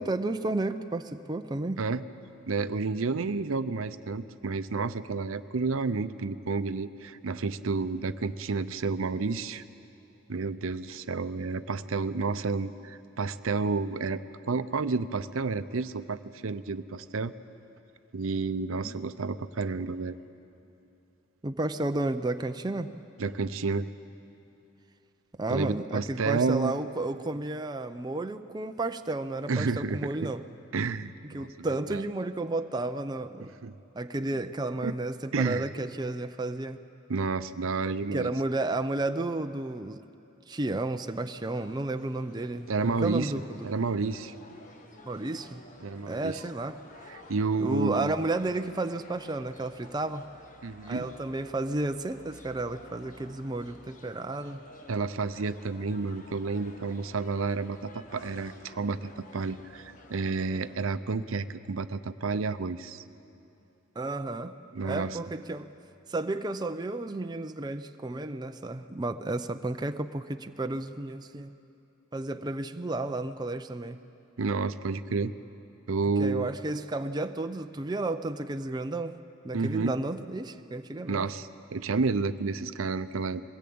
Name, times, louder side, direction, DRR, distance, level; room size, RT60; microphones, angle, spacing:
voice 1, 0.0-1.8 18.8-18.9 21.4-22.9 25.4-30.4 31.3-33.5 34.0-36.8 38.1-40.0 40.5-43.7 45.0-45.6 46.1-46.8 47.6-50.3 50.9-54.6 64.0-65.7 66.1-71.5 72.1-74.0 76.2-79.2 79.4-81.3, right 2 dB, 20° right, 8 dB, 0.5 m, -32 dB
voice 2, 2.5-9.6 10.3-14.2 14.5-17.3 18.1-20.2 23.2-23.9 25.5-26.7 29.5-30.3 30.7-32.0 33.6-33.7 34.2-34.3 34.8-34.9 35.3-35.6 37.1-38.3 42.7-43.3 43.6-44.3 45.8-46.4 47.3-48.1 50.6-51.1 54.9-63.0 64.7-65.2 74.4-75.3 75.9-76.5 79.5-79.9 81.1-83.4, right 4 dB, 75° right, 13 dB, 0.6 m, -30 dB
sound 1, 41.5-60.8, left 2 dB, 40° left, 1.4 m, -52 dB
22.0 x 17.5 x 8.6 m, 2.7 s
head